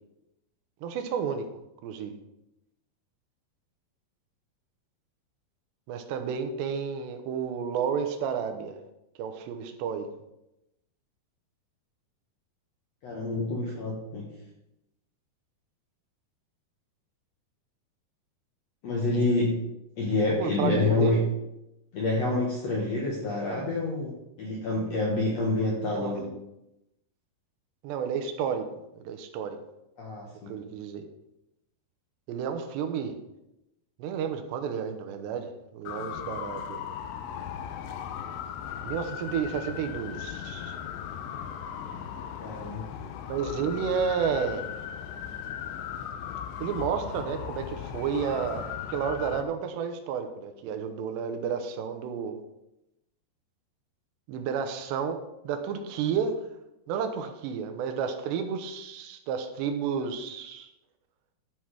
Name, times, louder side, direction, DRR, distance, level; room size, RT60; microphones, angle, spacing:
voice 1, 0.8-1.5 1.8-2.2 5.9-8.8 9.2-10.1 20.2-21.2 26.0-26.3 27.8-28.7 29.0-29.6 30.5-31.1 32.3-33.1 34.0-36.8 38.8-40.8 43.3-44.6 46.6-52.4 54.3-56.4 56.9-60.7, right 7 dB, 90° right, 7 dB, 3.1 m, -31 dB
voice 2, 13.0-14.3 18.8-19.6 20.0-21.3 21.9-26.3 30.0-30.6 42.4-42.9, left 2 dB, 65° left, -2 dB, 1.6 m, -27 dB
sound 1, 35.9-49.4, left 9 dB, 85° left, 2.9 m, -37 dB
12.5 x 5.8 x 4.7 m, 0.89 s
omnidirectional pair, 4.8 m